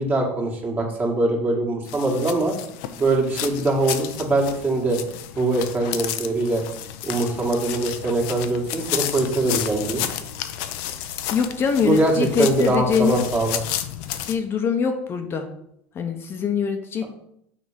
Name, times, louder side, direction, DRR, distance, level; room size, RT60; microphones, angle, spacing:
voice 1, 0.0-2.5 3.0-5.0 5.4-6.6 7.0-10.0 11.8-13.6 17.0-17.1, right 2 dB, 30° right, 1 dB, 2.0 m, -22 dB
sound 1, 1.9-14.3, left 11 dB, 70° left, 0.7 m, -32 dB
voice 2, 11.3-13.2 14.3-15.5 15.9-17.1, left 6 dB, 35° left, 5 dB, 0.9 m, -23 dB
6.6 x 4.3 x 5.1 m, 0.75 s
supercardioid pair, 100°, 7 cm